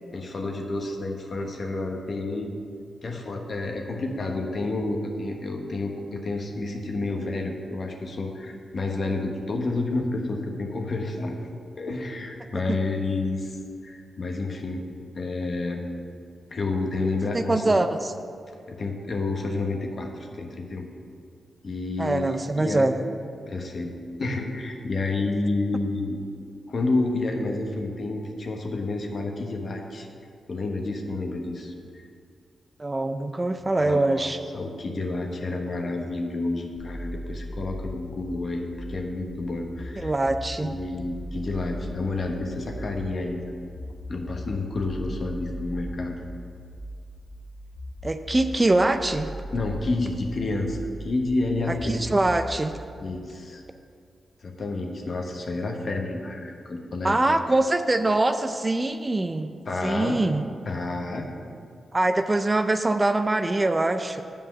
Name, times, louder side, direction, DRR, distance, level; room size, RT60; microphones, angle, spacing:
voice 1, 0.1-2.5 3.0-11.4 11.8-14.8 15.1-15.8 16.5-17.7 18.7-20.9 21.6-22.9 23.5-26.2 26.7-30.1 30.5-31.7 33.8-34.3 34.5-40.1 40.6-43.7 44.1-46.2 49.5-52.1 53.0-53.6 54.4-57.4 59.7-60.2 60.6-61.3, left 2 dB, 55° left, 2 dB, 1.2 m, -30 dB
voice 2, 17.3-18.1 22.0-23.0 32.8-34.4 40.0-40.7 48.0-49.3 51.8-52.7 57.0-59.5 59.8-60.4 61.9-64.2, right 2 dB, 25° right, 9 dB, 0.5 m, -23 dB
sound 1, 36.8-52.8, equal, 85° left, 1.1 m, -38 dB
7.8 x 5.4 x 7.0 m, 2.3 s
cardioid pair, 55°, 0 cm